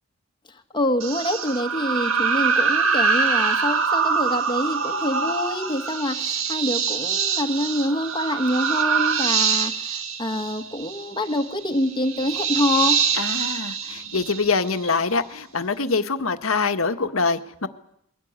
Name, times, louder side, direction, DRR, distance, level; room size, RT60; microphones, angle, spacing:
voice 1, 0.5-13.0, left 1 dB, 25° left, 6 dB, 1.5 m, -26 dB
sound 1, 1.0-14.9, right 6 dB, 80° right, 2.0 m, -24 dB
voice 2, 13.1-17.7, left 4 dB, 85° left, 8 dB, 1.6 m, -24 dB
22.5 x 17.5 x 9.6 m, 0.74 s
head